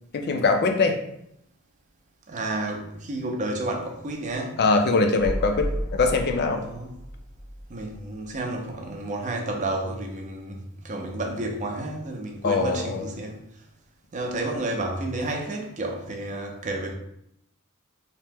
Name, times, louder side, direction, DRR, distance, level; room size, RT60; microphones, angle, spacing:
voice 1, 0.1-1.0 4.6-6.6 12.4-13.0, left 3 dB, 50° left, 5 dB, 0.4 m, -22 dB
voice 2, 2.3-4.6 6.6-6.9 7.7-13.4 14.1-16.9, right 2 dB, 35° right, 1 dB, 0.5 m, -31 dB
sound 1, 5.1-8.9 9.2-9.3, equal, 80° left, 0.8 m, -34 dB
2.8 x 2.1 x 3.3 m, 0.74 s
head